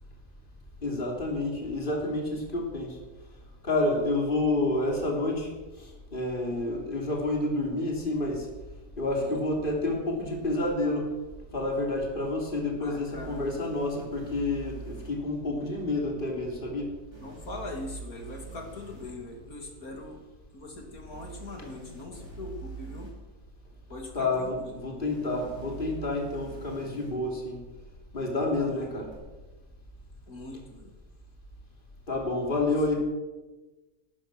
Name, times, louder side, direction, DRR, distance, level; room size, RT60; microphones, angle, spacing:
voice 1, 0.8-3.0 3.6-5.5 5.8-8.5 9.0-11.1 11.5-16.9 24.1-27.6 28.1-29.1 32.1-33.0, left 2 dB, 30° left, 0 dB, 3.4 m, -29 dB
voice 2, 12.8-13.6 15.5-15.7 17.2-20.2 20.5-23.1 23.9-24.7 28.6-28.9 30.3-30.9, left 2 dB, 65° left, 2 dB, 3.2 m, -42 dB
sound 1, 13.1-15.1 17.1-19.1 21.1-23.1 25.1-27.1 29.1-29.2, right 4 dB, 80° right, 7.5 m, -44 dB
17.5 x 13.0 x 6.4 m, 1.2 s
omnidirectional pair, 1.7 m